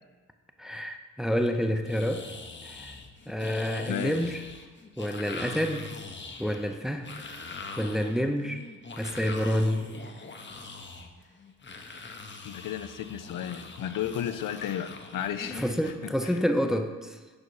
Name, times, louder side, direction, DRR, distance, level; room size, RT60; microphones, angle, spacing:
voice 1, 0.6-2.3 2.6-2.9 3.3-4.4 5.0-5.9 6.4-7.1 7.8-8.6 9.0-9.9 15.5-17.2, equal, ahead, 6 dB, 0.5 m, -28 dB
sound 1, 1.8-15.9, left 3 dB, 35° left, 0.8 m, -43 dB
voice 2, 3.8-4.2 12.4-15.7 16.0-16.3, left 10 dB, 80° left, 11 dB, 0.5 m, -33 dB
6.6 x 5.3 x 4.6 m, 1.3 s
cardioid pair, 70°, 32 cm